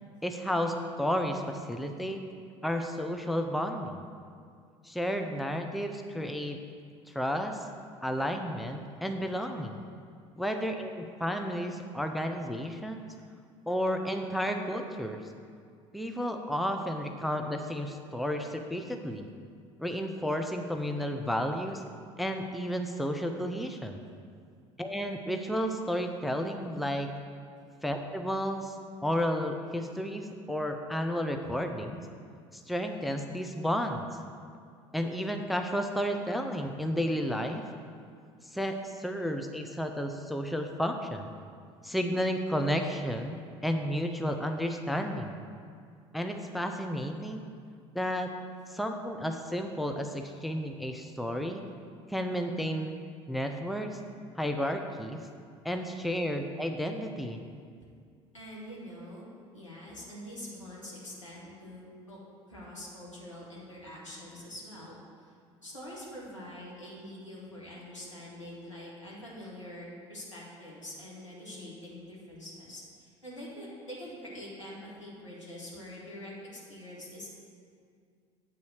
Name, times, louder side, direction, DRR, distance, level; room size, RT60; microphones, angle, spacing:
voice 1, 0.2-2.2 2.6-4.0 4.8-6.6 7.1-7.6 8.0-9.8 10.4-13.0 13.7-15.2 15.9-19.3 19.8-21.8 22.2-24.0 24.8-27.1 27.8-28.8 29.0-32.0 32.5-34.1 34.9-37.6 38.5-41.3 41.8-45.4 46.1-47.4 47.9-48.3 48.7-51.6 52.1-52.9 53.3-54.0 54.4-55.2 55.6-57.4, equal, ahead, 4 dB, 0.5 m, -32 dB
voice 2, 58.3-59.3 59.5-62.2 62.5-65.3 65.6-77.3, left 1 dB, 85° left, -6 dB, 1.8 m, -45 dB
8.5 x 4.0 x 6.4 m, 2.2 s
figure-of-eight pair, 60°, 15 cm